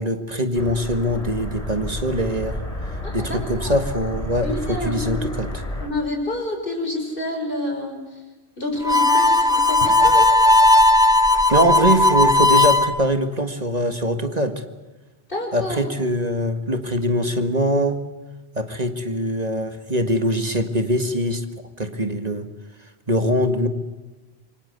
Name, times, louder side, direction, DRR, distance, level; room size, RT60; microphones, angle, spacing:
voice 1, 0.0-2.6 3.1-5.5 11.5-14.6 15.5-18.0 18.5-21.4 21.8-22.5 23.1-23.7, equal, 40° right, 8 dB, 1.9 m, -22 dB
sound 1, 0.5-5.9, left 1 dB, 35° left, 3.7 m, -31 dB
voice 2, 3.0-3.8 4.4-5.2 5.8-8.2 8.6-10.4 15.3-15.8, left 1 dB, 55° left, 3 dB, 6.1 m, -28 dB
Harmonica, 8.8-12.9, left 2 dB, 5° right, 1.4 m, -16 dB
27.0 x 24.0 x 8.2 m, 1.1 s
omnidirectional pair, 1.1 m